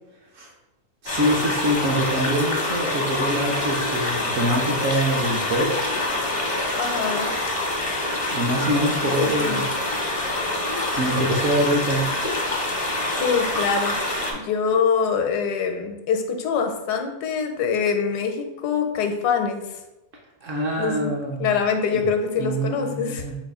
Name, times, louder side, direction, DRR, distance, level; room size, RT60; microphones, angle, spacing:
voice 1, 1.0-5.7 8.3-9.6 10.9-12.0 20.4-21.6 21.9-22.0 22.4-23.4, right 1 dB, 60° right, -1 dB, 0.9 m, -24 dB
sound 1, 1.1-14.3, left 2 dB, 35° left, 0.5 m, -26 dB
voice 2, 6.8-7.4 9.2-9.6 13.2-13.9 14.3-19.6 20.8-21.1 21.4-23.2, left 6 dB, 80° left, 5 dB, 1.2 m, -24 dB
4.0 x 2.4 x 4.7 m, 1.0 s
omnidirectional pair, 1.7 m